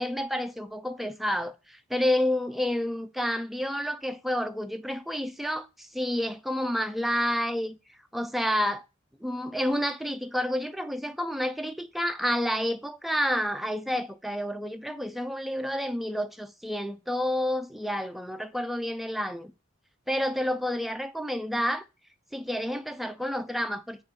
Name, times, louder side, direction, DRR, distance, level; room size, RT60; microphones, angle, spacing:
voice 1, 0.0-7.8 8.1-8.8 9.2-19.5 20.1-21.8 22.3-24.0, equal, ahead, 0.3 m, -29 dB
5.0 x 2.4 x 4.3 m
head